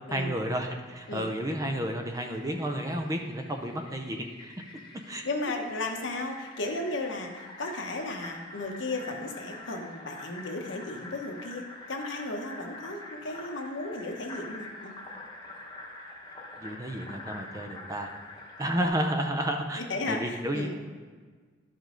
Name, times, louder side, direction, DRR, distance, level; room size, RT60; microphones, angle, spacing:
voice 1, 0.1-4.5 5.1-5.2 16.6-18.1 18.6-19.8 20.1-20.8, right 1 dB, 15° right, 4 dB, 0.5 m, -31 dB
Fill (with liquid), 0.8-18.9, left 2 dB, 20° left, 1.0 m, -45 dB
voice 2, 5.2-14.9 19.8-20.8, left 2 dB, 65° left, 3 dB, 1.0 m, -35 dB
11.5 x 5.2 x 3.8 m, 1.5 s
head